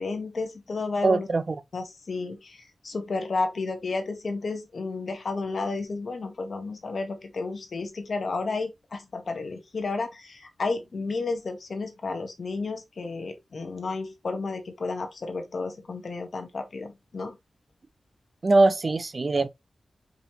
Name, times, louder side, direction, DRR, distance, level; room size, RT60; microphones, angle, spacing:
voice 1, 0.0-1.3 1.7-17.4, left 3 dB, 50° left, 0.9 m, -32 dB
voice 2, 1.0-1.6 18.4-19.5, right 3 dB, 35° right, 0.3 m, -22 dB
4.9 x 2.9 x 2.8 m
wide cardioid pair, 175°, 0 cm